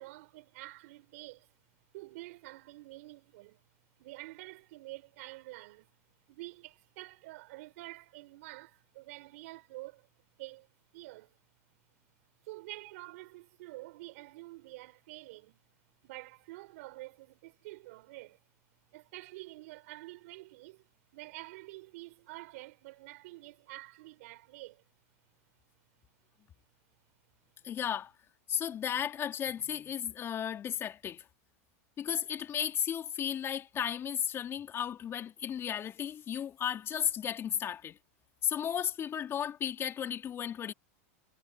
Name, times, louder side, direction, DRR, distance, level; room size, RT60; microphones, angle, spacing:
voice 1, 0.0-1.5 1.9-3.6 4.0-5.9 6.3-10.1 10.4-10.7 10.9-11.3 12.4-15.6 16.0-18.4 18.9-20.9 21.1-24.8, right 21 dB, 70° right, 4.9 m, -48 dB
voice 2, 27.6-28.1 28.5-31.2 32.0-38.0 38.4-40.7, left 9 dB, 30° left, 2.7 m, -34 dB
hypercardioid pair, 115°, 8 cm